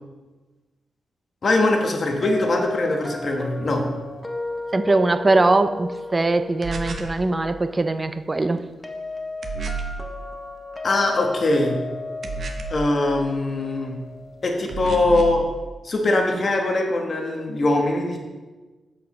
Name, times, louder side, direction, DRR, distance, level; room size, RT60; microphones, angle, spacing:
voice 1, 1.4-3.8 10.8-11.8 12.7-14.0 14.4-15.4 15.8-18.2, left 2 dB, 50° left, 2 dB, 1.2 m, -22 dB
sound 1, 2.2-15.1, left 3 dB, 15° left, 0.7 m, -35 dB
voice 2, 4.7-8.6, right 2 dB, 25° right, 11 dB, 0.4 m, -21 dB
sound 2, 6.6-7.2 9.4-10.0 12.2-12.9 14.7-15.4, right 3 dB, 60° right, 0.7 m, -30 dB
7.6 x 6.7 x 3.1 m, 1.3 s
cardioid pair, 100°, 0 cm